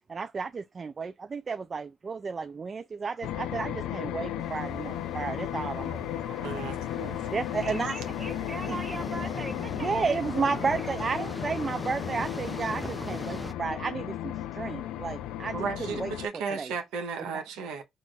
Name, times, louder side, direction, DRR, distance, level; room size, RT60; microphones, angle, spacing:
voice 1, 0.1-6.5 7.3-8.0 8.7-8.8 9.7-16.1 16.5-16.7 17.3-17.4, right 5 dB, 35° right, 0.3 m, -32 dB
sound 1, 3.2-16.3, left 12 dB, 85° left, 0.4 m, -35 dB
sound 2, 4.4-13.5, equal, ahead, 0.6 m, -41 dB
voice 2, 5.8-6.6 7.6-10.2 10.8-11.0, right 3 dB, 20° right, 1.2 m, -41 dB
voice 3, 6.4-7.2 15.5-17.8, right 5 dB, 85° right, 0.8 m, -34 dB
3.1 x 2.5 x 4.0 m
cardioid pair, 85°, 0 cm